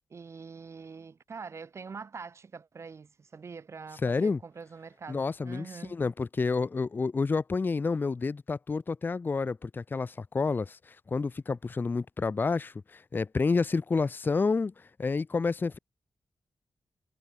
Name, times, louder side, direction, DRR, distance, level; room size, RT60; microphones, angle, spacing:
voice 1, 0.1-6.0, right 5 dB, 40° right, 0.4 m, -44 dB
voice 2, 4.0-4.4 5.1-14.7 15.0-15.8, left 4 dB, 25° left, 0.4 m, -29 dB
wide cardioid pair, 160°, 8 cm